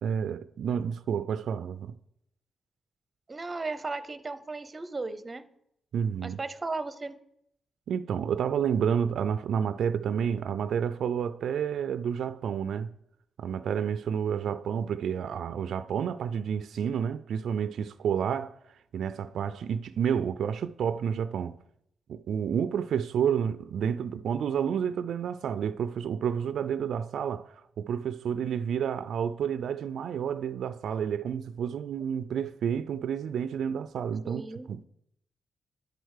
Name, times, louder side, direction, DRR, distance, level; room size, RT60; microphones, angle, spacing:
voice 1, 0.0-2.0 5.9-6.4 7.9-12.9 13.4-18.5 18.9-21.6 22.1-34.4 34.7-34.8, right 8 dB, 80° right, 0.3 m, -30 dB
voice 2, 3.3-5.5 6.2-7.2 34.2-34.8, right 3 dB, 25° right, 0.6 m, -36 dB
10.5 x 4.6 x 6.4 m
cardioid pair, 105°, 0 cm